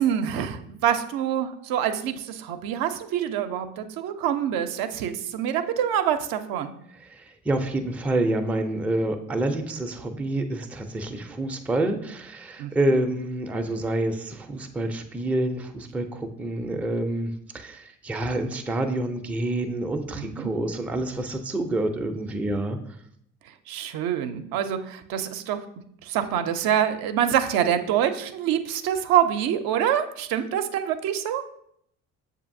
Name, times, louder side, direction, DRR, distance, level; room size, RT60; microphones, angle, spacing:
voice 1, 0.0-6.7 12.6-12.7 20.2-20.5 23.7-25.6 26.0-31.4, right 9 dB, 65° right, 8 dB, 0.5 m, -25 dB
voice 2, 7.0-22.8, right 1 dB, 5° right, 5 dB, 0.4 m, -28 dB
6.7 x 2.7 x 2.6 m, 0.70 s
hypercardioid pair, 50°, 39 cm